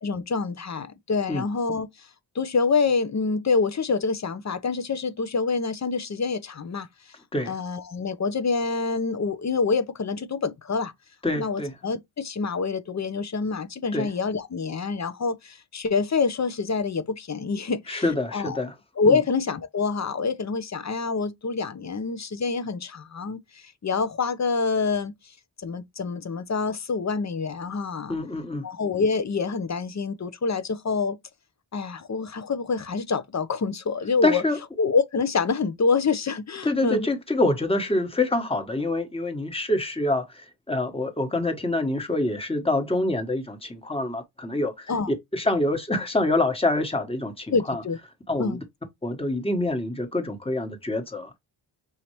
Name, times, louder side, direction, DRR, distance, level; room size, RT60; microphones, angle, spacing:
voice 1, 0.0-2.1 2.3-6.9 7.5-10.9 11.3-18.6 19.0-25.1 25.6-28.2 28.6-31.2 31.7-34.4 34.8-37.1 44.9-45.1 47.5-48.0 48.4-48.6, left 4 dB, 40° left, 0.9 m, -26 dB
voice 2, 11.2-11.7 13.9-14.1 17.9-18.7 19.0-19.2 28.1-28.6 34.2-34.6 36.6-47.8 48.3-48.6 49.0-51.4, left 2 dB, 15° left, 1.4 m, -26 dB
5.5 x 2.8 x 3.1 m
cardioid pair, 55°, 43 cm